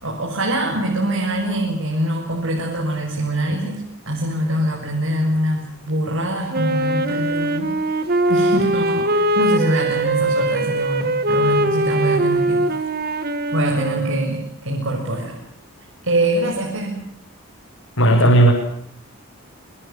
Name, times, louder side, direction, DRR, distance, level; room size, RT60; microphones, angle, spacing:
voice 1, 0.0-7.7 8.3-12.6 13.5-15.3 16.0-17.0, right 1 dB, 60° right, 0 dB, 6.8 m, -23 dB
Wind instrument woodwind instrument, 6.5-14.5, right 1 dB, 40° right, 2.3 m, -21 dB
voice 2, 18.0-18.5, right 1 dB, 60° left, -2 dB, 7.6 m, -13 dB
26.5 x 26.5 x 7.5 m, 0.68 s
head